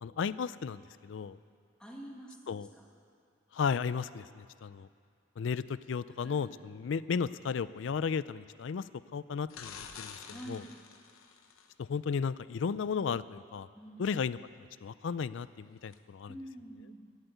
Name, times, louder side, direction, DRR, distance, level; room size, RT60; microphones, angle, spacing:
voice 1, 0.0-1.4 2.5-2.7 3.5-4.9 5.4-8.8 9.1-10.2 10.5-10.6 11.8-13.7 14.0-16.3, left 6 dB, 65° left, 17 dB, 0.4 m, -34 dB
voice 2, 1.8-2.4 2.7-2.8 6.2-6.6 10.2-10.8 13.7-14.0 16.3-17.1, right 1 dB, 5° left, -2 dB, 1.8 m, -47 dB
sound 1, 9.5-11.7 15.9-16.0, left 6 dB, 90° left, 0.9 m, -48 dB
14.5 x 8.1 x 9.1 m, 2.3 s
head